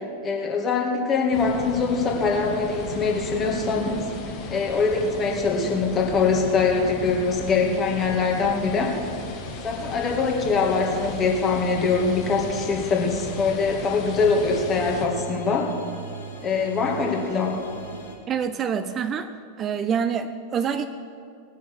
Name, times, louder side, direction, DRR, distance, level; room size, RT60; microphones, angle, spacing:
voice 1, 0.2-4.0 4.5-9.0 9.6-15.7 16.4-17.6, left 4 dB, 25° left, 0 dB, 2.1 m, -23 dB
sound 1, 1.3-15.0, left 4 dB, 40° left, 2.0 m, -36 dB
sound 2, 6.1-18.2, right 3 dB, 70° left, 2.0 m, -42 dB
voice 2, 18.3-19.3 19.6-20.9, right 7 dB, 30° right, 11 dB, 0.5 m, -26 dB
19.0 x 7.0 x 6.3 m, 2.4 s
figure-of-eight pair, 90°, 0 cm